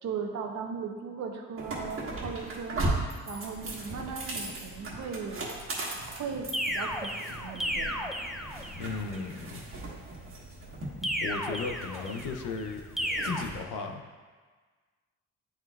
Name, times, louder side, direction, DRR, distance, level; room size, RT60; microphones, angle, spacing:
voice 1, 0.0-3.0 3.3-5.4 6.1-8.3, right 6 dB, 65° right, 3 dB, 0.9 m, -38 dB
sound 1, 1.6-13.6, right 2 dB, 45° right, 1.4 m, -38 dB
sound 2, 6.5-8.9 11.0-12.4 13.0-13.4, equal, ahead, 0.5 m, -33 dB
voice 2, 8.8-9.6 11.2-12.8 13.2-14.0, left 4 dB, 85° left, 5 dB, 0.7 m, -35 dB
9.2 x 4.4 x 2.4 m, 1.5 s
cardioid pair, 90°, 30 cm